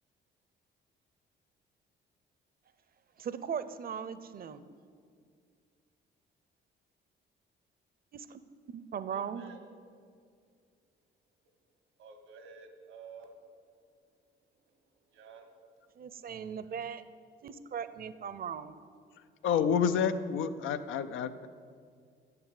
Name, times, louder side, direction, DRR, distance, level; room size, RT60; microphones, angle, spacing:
voice 1, 3.2-4.6 8.1-8.4 8.7-9.4 16.0-17.0 17.4-18.7, right 7 dB, 50° right, 13 dB, 0.7 m, -38 dB
voice 2, 9.1-9.6 12.0-13.5 14.5-15.9, right 5 dB, 85° right, 6 dB, 1.6 m, -52 dB
voice 3, 19.2-21.5, left 7 dB, 85° left, 10 dB, 0.6 m, -29 dB
9.6 x 7.4 x 8.3 m, 2.2 s
cardioid pair, 90°, 20 cm